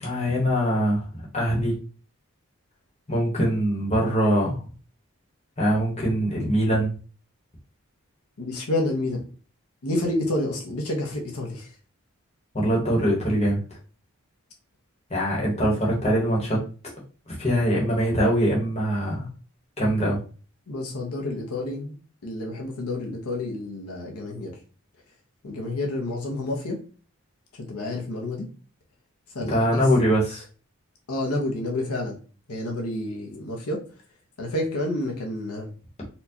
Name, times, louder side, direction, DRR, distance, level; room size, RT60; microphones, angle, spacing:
voice 1, 0.0-1.1 1.3-1.7 3.1-4.6 5.6-6.9 12.5-13.6 15.1-16.6 17.4-19.3 19.8-20.2 29.5-30.4, equal, 30° left, -3 dB, 1.1 m, -22 dB
voice 2, 8.4-9.2 9.8-11.7 20.7-21.9 22.2-24.6 25.4-26.8 27.5-28.5 29.3-29.8 31.1-32.2 32.5-33.8 34.4-35.7, left 1 dB, 80° left, 0 dB, 0.9 m, -29 dB
4.3 x 2.3 x 2.8 m, 0.37 s
head